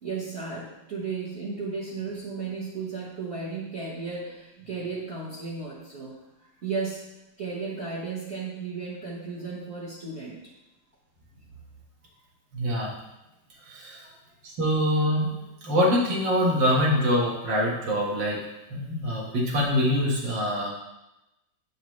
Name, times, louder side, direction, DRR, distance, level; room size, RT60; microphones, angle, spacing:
voice 1, 0.0-6.2 6.6-7.0 7.4-10.4 13.9-14.2, right 4 dB, 40° right, -6 dB, 1.1 m, -34 dB
voice 2, 12.5-12.9 13.7-14.1 14.6-15.4 15.6-18.4 18.7-20.7, equal, 70° right, -4 dB, 2.1 m, -24 dB
7.8 x 5.0 x 3.1 m, 0.94 s
omnidirectional pair, 2.1 m